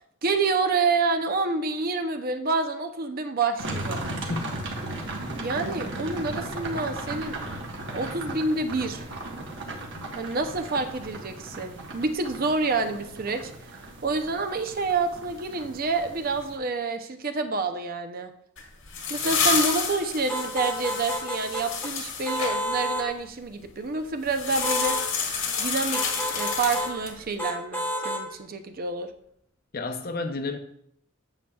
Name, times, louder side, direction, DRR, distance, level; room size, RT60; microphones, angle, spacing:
voice 1, 0.2-4.0 5.4-7.4 7.9-9.0 10.2-13.5 14.0-18.3 19.1-25.0 25.6-29.1, right 3 dB, 45° right, 0.6 m, -28 dB
sound 1, 3.6-16.6, right 2 dB, 60° right, 1.3 m, -36 dB
voice 2, 4.3-4.7 29.7-30.6, left 3 dB, 45° left, 0.7 m, -31 dB
sound 2, 18.6-22.5 24.3-27.2, left 5 dB, 80° left, 1.7 m, -29 dB
sound 3, 20.3-21.9 22.3-23.1 24.6-25.1 25.9-27.0 27.4-28.3, equal, 10° left, 0.9 m, -30 dB
8.7 x 7.4 x 2.3 m
head